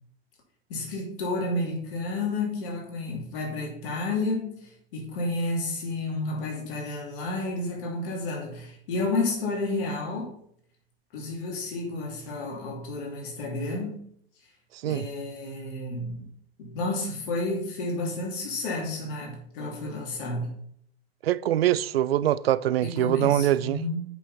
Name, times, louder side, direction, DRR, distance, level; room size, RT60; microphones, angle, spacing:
voice 1, 0.7-10.3 11.1-14.0 14.9-16.3 16.6-20.5 22.8-24.0, left 2 dB, 60° left, 2.8 m, -31 dB
voice 2, 21.2-23.8, right 12 dB, 70° right, 0.5 m, -23 dB
8.1 x 5.7 x 4.1 m
figure-of-eight pair, 80°, 31 cm